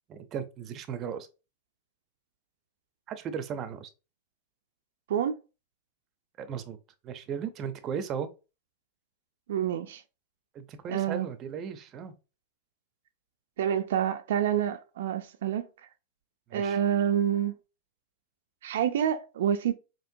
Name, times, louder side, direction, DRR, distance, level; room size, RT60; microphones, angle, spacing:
voice 1, 0.1-1.3 3.1-3.9 6.4-6.8 7.0-8.3 10.5-12.1 16.5-16.8, right 7 dB, 35° right, 0.6 m, -36 dB
voice 2, 9.5-10.0 10.9-11.3 13.6-15.6 16.5-17.5 18.6-19.7, right 9 dB, 75° right, 0.4 m, -27 dB
4.4 x 2.9 x 2.6 m
hypercardioid pair, 130°, 0 cm